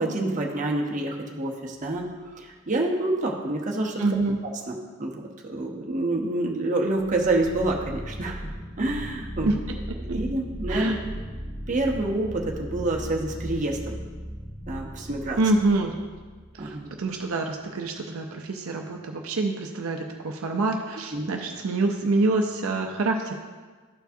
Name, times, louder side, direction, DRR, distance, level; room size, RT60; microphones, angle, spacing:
voice 1, 0.0-2.1 2.3-4.0 4.7-8.4 8.8-9.6 10.1-11.0 11.7-13.9 14.7-15.4 16.6-16.9 21.1-21.3, right 2 dB, 35° right, 0 dB, 0.8 m, -27 dB
sound 1, 2.1-2.5 6.9-17.1, equal, 5° right, 2.0 m, -37 dB
voice 2, 4.0-4.4 9.4-9.5 10.1-10.2 10.7-11.0 15.4-15.9 16.6-23.3, right 2 dB, 70° right, 2 dB, 0.6 m, -26 dB
12.5 x 4.6 x 2.7 m, 1.4 s
head